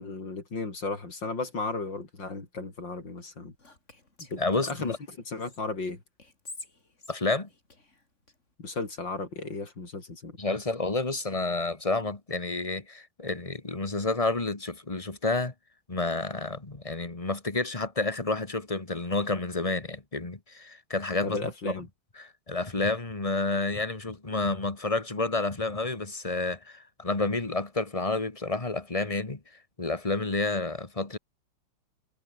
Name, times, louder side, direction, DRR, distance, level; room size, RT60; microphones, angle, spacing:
voice 1, 0.0-3.5 4.3-4.9 5.3-6.0 8.6-10.4 21.2-21.9, left 3 dB, 65° left, 5.8 m, -35 dB
Whispering, 3.6-5.6 6.2-8.4, left 3 dB, 35° left, 4.3 m, -48 dB
voice 2, 4.4-5.0 7.1-7.5 10.4-15.5 15.9-21.8 22.2-29.4 29.8-31.2, left 3 dB, 15° left, 1.9 m, -30 dB
omnidirectional pair, 2.2 m